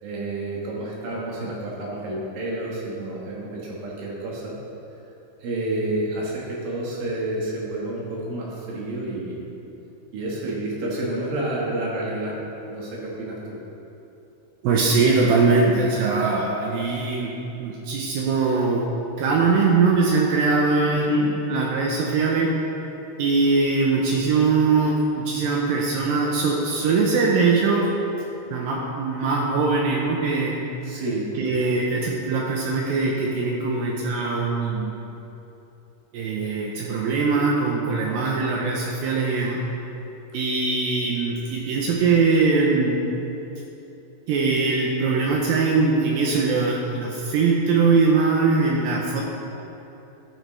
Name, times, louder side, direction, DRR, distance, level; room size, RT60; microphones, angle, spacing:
voice 1, 0.0-4.6 5.4-9.4 10.1-13.6 20.9-21.3 30.8-31.4 38.0-38.3, right 1 dB, 65° right, -4 dB, 2.8 m, -30 dB
voice 2, 14.6-17.3 17.6-18.9 19.2-22.5 23.2-27.9 28.5-30.6 31.4-34.9 36.1-39.6 40.3-43.0 44.3-49.2, right 4 dB, 80° right, -1 dB, 2.1 m, -21 dB
12.0 x 7.8 x 3.2 m, 2.9 s
omnidirectional pair, 5.0 m